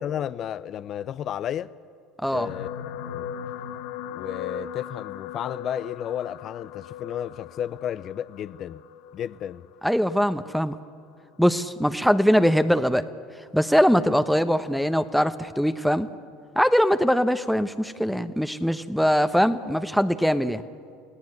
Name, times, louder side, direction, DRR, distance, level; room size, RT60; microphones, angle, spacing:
voice 1, 0.0-1.7 2.3-2.7 3.0-3.3 4.1-8.8 9.1-9.7, left 10 dB, 50° left, 0.5 m, -32 dB
voice 2, 2.2-2.5 9.8-10.7 11.4-13.0 13.5-16.1 16.6-20.6, equal, ahead, 1.0 m, -22 dB
sound 1, 2.3-10.8 11.5-11.8 12.1-12.2, left 8 dB, 70° left, 1.1 m, -38 dB
28.0 x 17.5 x 9.7 m
hypercardioid pair, 70°, 0 cm